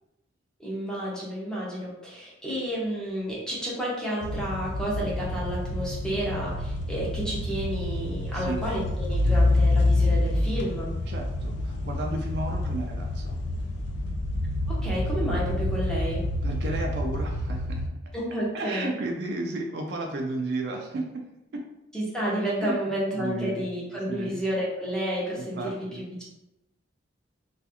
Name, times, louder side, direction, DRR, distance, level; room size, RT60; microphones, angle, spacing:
voice 1, 0.6-11.0 14.7-16.2 18.1-18.9 21.9-26.2, equal, 5° left, -6 dB, 0.6 m, -31 dB
sound 1, 4.2-17.9, left 2 dB, 65° left, 0.3 m, -27 dB
voice 2, 11.1-13.4 16.4-17.9 18.5-21.3 21.5-21.6 22.6-23.7 24.1-24.4 25.3-26.0, right 2 dB, 55° right, 2 dB, 0.3 m, -33 dB
2.4 x 2.3 x 2.8 m, 0.90 s
head